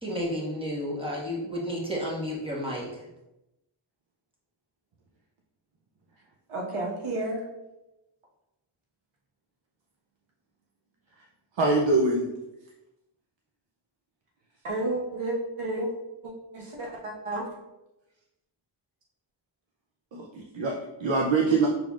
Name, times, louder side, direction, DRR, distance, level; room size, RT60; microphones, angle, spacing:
voice 1, 0.0-3.1, equal, 10° right, -5 dB, 1.3 m, -32 dB
voice 2, 6.5-7.4 14.6-15.9 16.2-17.5, right 2 dB, 90° right, -3 dB, 1.3 m, -31 dB
voice 3, 11.6-12.3 20.1-21.7, right 3 dB, 65° right, 0 dB, 0.6 m, -24 dB
5.9 x 3.8 x 2.4 m, 0.96 s
wide cardioid pair, 85°, 49 cm